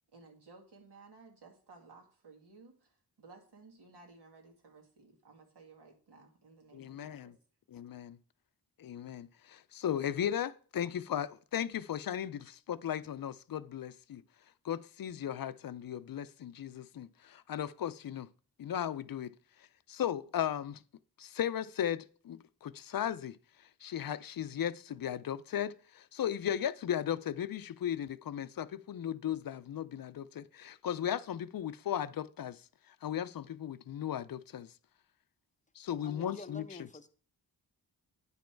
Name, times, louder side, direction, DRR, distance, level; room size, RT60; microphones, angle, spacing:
voice 1, 0.1-7.3, right 3 dB, 80° right, 2.2 m, -57 dB
voice 2, 6.7-7.3 7.7-8.2 8.8-14.2 14.6-18.3 18.6-19.4 19.9-20.8 21.2-23.4 23.8-34.7 35.8-36.8, left 10 dB, 60° left, 0.5 m, -36 dB
voice 3, 36.0-37.1, left 3 dB, 20° left, 0.7 m, -48 dB
9.6 x 5.3 x 4.5 m
cardioid pair, 80°, 40 cm